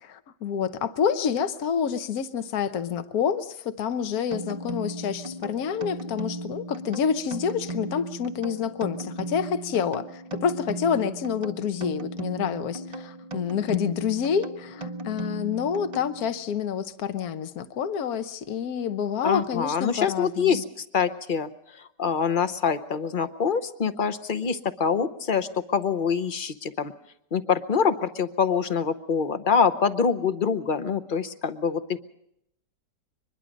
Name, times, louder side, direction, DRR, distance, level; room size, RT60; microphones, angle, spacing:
voice 1, 0.0-20.6, left 7 dB, 60° left, 11 dB, 1.4 m, -28 dB
sound 1, 4.3-16.5, right 2 dB, 25° right, 0.8 m, -37 dB
voice 2, 19.2-26.9 27.3-32.0, left 6 dB, 40° left, 11 dB, 0.8 m, -25 dB
24.0 x 21.5 x 5.2 m, 0.75 s
omnidirectional pair, 1.9 m